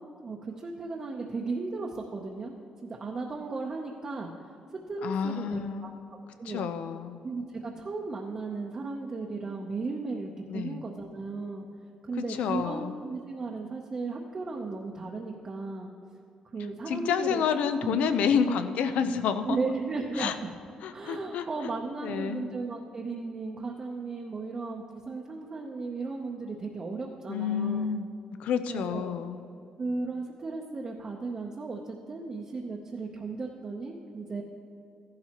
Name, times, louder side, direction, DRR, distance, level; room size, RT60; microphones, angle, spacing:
voice 1, 0.0-2.5 2.8-4.3 4.7-5.9 6.4-6.6 7.2-11.6 12.0-15.9 16.5-17.4 17.8-18.0 19.5-20.5 20.9-27.9 28.7-29.2 29.8-34.4, right 3 dB, 30° right, 0 dB, 0.7 m, -35 dB
voice 2, 5.0-6.0 6.5-7.2 10.5-10.8 12.2-12.9 16.9-19.6 20.2-20.3 20.8-21.5 22.0-22.4 27.3-28.1 28.4-29.4, left 7 dB, 80° left, 10 dB, 0.6 m, -29 dB
14.5 x 11.5 x 3.0 m, 2.6 s
cardioid pair, 140°, 2 cm